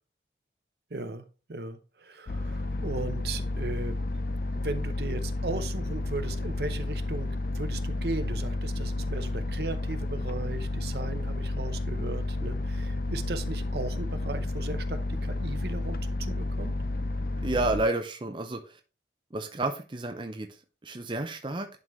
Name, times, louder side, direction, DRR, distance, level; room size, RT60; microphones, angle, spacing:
voice 1, 0.9-4.0 4.5-16.7, right 3 dB, 65° right, 9 dB, 0.7 m, -37 dB
sound 1, 2.3-17.8, left 2 dB, 50° left, 0.4 m, -31 dB
voice 2, 17.4-18.8 19.3-20.5 20.8-21.7, right 2 dB, 25° right, 5 dB, 0.5 m, -30 dB
11.0 x 3.8 x 3.1 m, 0.34 s
head